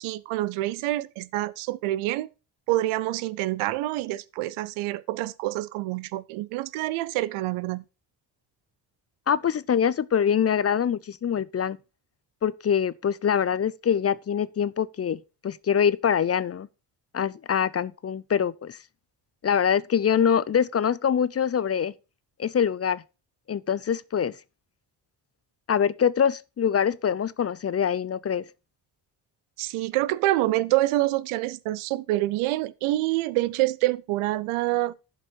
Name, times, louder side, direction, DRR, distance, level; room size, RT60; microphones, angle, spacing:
voice 1, 0.0-2.3 2.7-7.8 29.6-34.9, right 17 dB, 80° right, 0.6 m, -26 dB
voice 2, 9.3-11.8 12.4-16.7 17.1-18.8 19.4-21.9 22.4-23.0 23.5-24.3 25.7-28.4, left 8 dB, 30° left, 0.5 m, -24 dB
11.0 x 5.3 x 4.4 m
hypercardioid pair, 45°, 49 cm